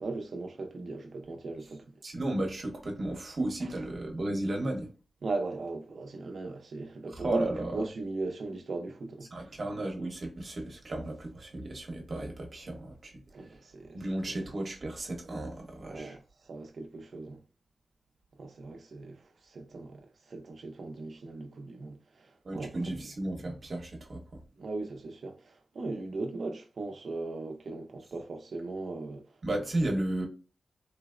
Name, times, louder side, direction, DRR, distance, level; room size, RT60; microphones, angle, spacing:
voice 1, 0.0-1.8 5.2-9.5 13.3-14.0 15.9-17.4 18.4-19.2 19.4-23.0 24.6-29.2, right 3 dB, 70° right, 0.7 m, -38 dB
voice 2, 2.0-4.9 7.1-7.8 9.3-13.6 13.9-16.2 22.4-24.4 29.4-30.3, right 1 dB, 55° right, 1.0 m, -34 dB
3.9 x 2.1 x 2.4 m
wide cardioid pair, 95°, 0 cm